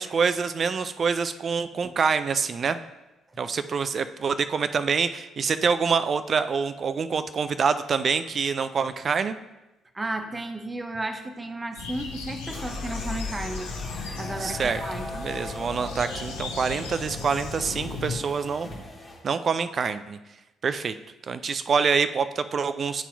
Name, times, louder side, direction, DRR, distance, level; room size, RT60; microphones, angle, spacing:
voice 1, 0.0-2.8 3.4-9.3 14.4-14.8 15.1-18.7 19.2-20.2 20.6-21.0 21.3-23.0, right 5 dB, 45° right, 11 dB, 0.3 m, -26 dB
voice 2, 9.9-13.7 14.1-15.1, right 2 dB, 20° right, 7 dB, 0.7 m, -33 dB
sound 1, 11.8-18.2, left 4 dB, 75° left, 0.7 m, -36 dB
sound 2, 12.5-19.2, left 3 dB, 30° left, 1.5 m, -38 dB
11.0 x 4.1 x 2.3 m, 1.0 s
figure-of-eight pair, 45°, 0 cm